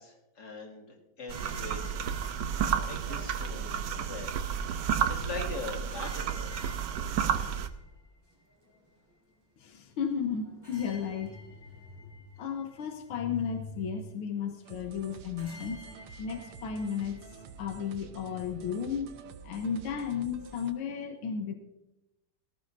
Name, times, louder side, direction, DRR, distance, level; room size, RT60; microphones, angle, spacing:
voice 1, 0.0-1.8 2.8-4.3 4.8-6.5, left 3 dB, 50° left, -1 dB, 2.9 m, -42 dB
sound 1, 1.3-17.7, left 2 dB, 10° right, 3.1 m, -55 dB
sound 2, 1.3-7.7, right 8 dB, 70° right, 1.2 m, -31 dB
voice 2, 9.6-15.8 16.2-17.2 17.6-19.1 19.4-21.5, left 7 dB, 90° left, 5 dB, 1.8 m, -34 dB
sound 3, 14.6-20.7, right 5 dB, 90° right, 1.7 m, -49 dB
18.5 x 14.0 x 2.6 m, 0.93 s
omnidirectional pair, 2.3 m